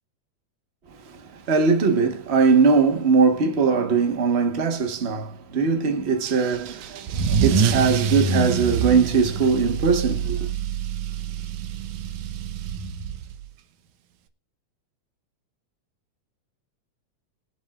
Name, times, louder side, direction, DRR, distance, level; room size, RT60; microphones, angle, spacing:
voice 1, 1.5-10.5, right 5 dB, 50° right, 0.7 m, -20 dB
Car / Engine starting / Accelerating revving vroom, 6.3-13.4, right 6 dB, 80° right, 2.4 m, -26 dB
23.5 x 7.9 x 2.4 m
omnidirectional pair, 3.3 m